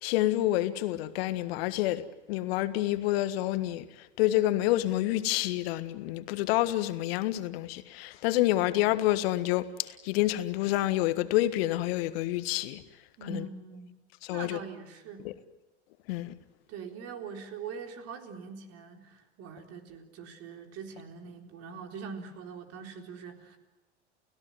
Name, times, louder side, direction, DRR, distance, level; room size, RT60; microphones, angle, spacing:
voice 1, 0.0-3.8 4.2-12.8 13.3-13.4 14.3-14.6 16.1-16.3, left 15 dB, 60° left, 1.6 m, -28 dB
voice 2, 13.2-14.0 14.3-15.3 16.7-23.6, right 5 dB, 45° right, 4.0 m, -43 dB
29.5 x 17.0 x 9.5 m
hypercardioid pair, 80°, 34 cm